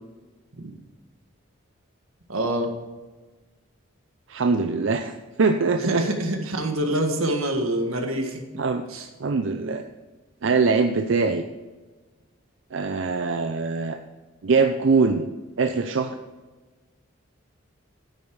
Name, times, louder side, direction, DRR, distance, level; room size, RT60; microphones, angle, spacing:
voice 1, 2.3-2.7 5.8-8.4 8.9-9.1, right 1 dB, 85° right, 4 dB, 1.7 m, -26 dB
voice 2, 4.3-5.1 5.4-6.0 8.6-8.8 9.2-9.8 10.4-11.4 12.7-14.0 14.4-15.3 15.6-16.2, right 4 dB, 65° right, 7 dB, 0.5 m, -22 dB
9.9 x 8.5 x 4.7 m, 1.3 s
head